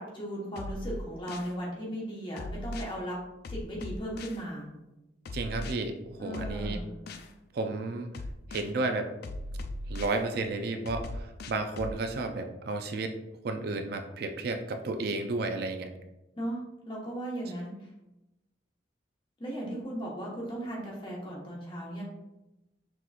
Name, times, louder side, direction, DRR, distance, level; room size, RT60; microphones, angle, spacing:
voice 1, 0.0-3.2 3.5-4.7 6.2-7.0 16.3-17.9 19.4-22.0, right 1 dB, 25° left, -3 dB, 1.1 m, -37 dB
sound 1, 0.6-1.5 2.4-2.9 3.4-4.4 5.3-5.7 6.3-7.3 8.1-8.7 9.2-10.2 10.9-12.0, left 1 dB, 55° left, 0.3 m, -38 dB
voice 2, 5.3-6.8 7.5-8.1 8.5-9.1 9.9-13.1 13.4-15.9, right 3 dB, 55° right, 6 dB, 0.4 m, -32 dB
6.0 x 3.0 x 2.4 m, 0.97 s
head